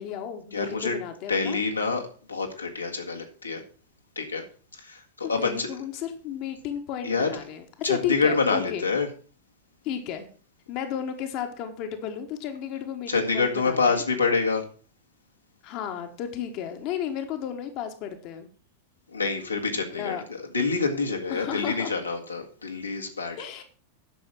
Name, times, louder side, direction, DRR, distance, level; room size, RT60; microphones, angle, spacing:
voice 1, 0.0-1.6 5.2-8.9 9.8-10.3 10.7-14.0 15.6-18.5 19.7-20.2 21.3-21.9 23.4-23.6, left 9 dB, 40° left, 6 dB, 1.3 m, -33 dB
voice 2, 0.5-1.0 1.3-3.6 4.2-4.4 4.7-5.7 7.0-7.3 7.8-9.1 13.1-14.6 19.1-23.4, left 4 dB, 80° left, 1 dB, 1.8 m, -27 dB
10.5 x 6.4 x 6.1 m, 0.41 s
figure-of-eight pair, 90°, 0 cm